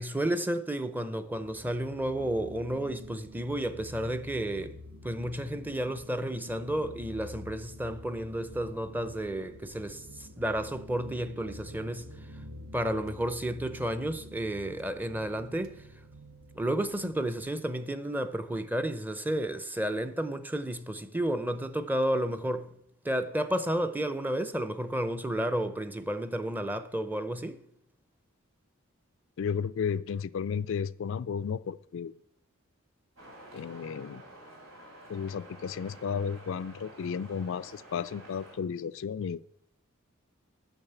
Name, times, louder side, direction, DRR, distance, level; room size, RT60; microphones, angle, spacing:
voice 1, 0.0-4.8 5.0-12.1 12.7-15.8 16.5-22.7 23.0-27.6, right 1 dB, 10° right, 0.6 m, -32 dB
sound 1, 1.3-17.5, left 1 dB, 75° right, 0.9 m, -48 dB
voice 2, 29.4-32.2 33.5-34.2 35.1-39.4, left 6 dB, 65° left, 0.4 m, -33 dB
sound 2, 33.2-38.6, right 1 dB, 90° right, 3.4 m, -50 dB
8.9 x 6.3 x 8.0 m
head